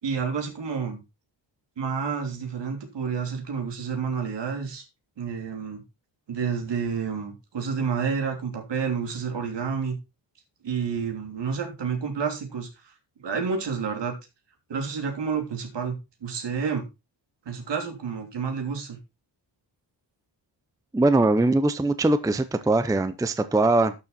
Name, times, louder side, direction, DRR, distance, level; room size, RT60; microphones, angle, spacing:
voice 1, 0.0-1.0 1.8-4.8 5.2-5.8 6.3-9.9 10.6-12.9 13.2-14.1 14.7-16.8 17.4-19.0, right 6 dB, 70° right, 4 dB, 3.2 m, -29 dB
voice 2, 20.9-23.9, right 2 dB, 10° right, 12 dB, 0.5 m, -21 dB
12.0 x 6.6 x 4.1 m, 0.25 s
wide cardioid pair, 160°, 44 cm